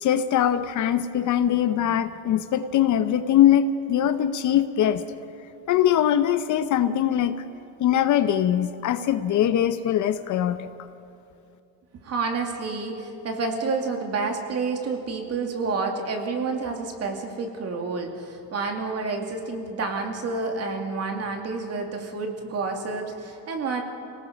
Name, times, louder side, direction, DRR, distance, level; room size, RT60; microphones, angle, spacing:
voice 1, 0.0-5.0 5.7-7.4 7.8-10.7, left 10 dB, 50° left, 11 dB, 0.8 m, -22 dB
voice 2, 12.0-23.8, right 4 dB, 40° right, 3 dB, 2.6 m, -29 dB
27.0 x 18.5 x 5.2 m, 2.6 s
cardioid pair, 135°, 39 cm